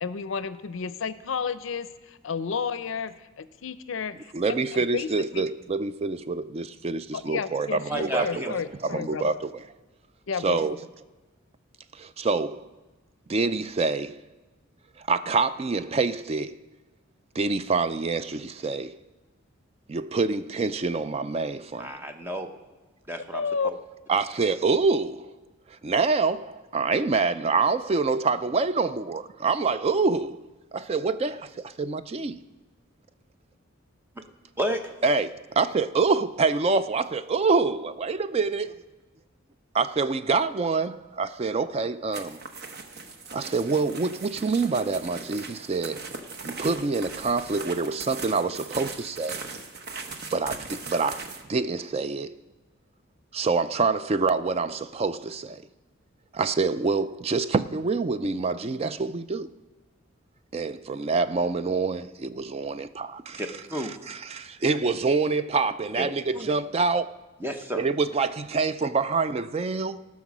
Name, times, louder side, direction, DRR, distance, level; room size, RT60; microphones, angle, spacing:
voice 1, 0.0-4.6 4.9-5.1 5.3-5.4 7.1-9.4 10.3-10.6 23.3-23.7, left 5 dB, 70° left, 0.5 m, -31 dB
voice 2, 4.3-9.6 10.4-10.8 11.9-12.7 13.3-14.2 15.0-16.6 17.4-19.0 19.9-22.0 24.1-25.4 25.7-30.4 30.7-32.4 35.0-38.7 39.7-42.4 43.3-46.1 46.4-49.5 50.3-52.4 53.3-55.6 56.3-59.5 60.5-63.5 63.7-67.1 67.8-70.1, right 4 dB, 30° right, 0.3 m, -26 dB
voice 3, 7.9-8.5 21.8-22.5 23.1-23.4 34.6-35.0 63.4-63.9 66.0-66.5 67.4-67.9, equal, 10° right, 0.8 m, -31 dB
sound 1, 42.1-51.4, right 4 dB, 50° right, 1.0 m, -39 dB
18.0 x 6.1 x 6.1 m
head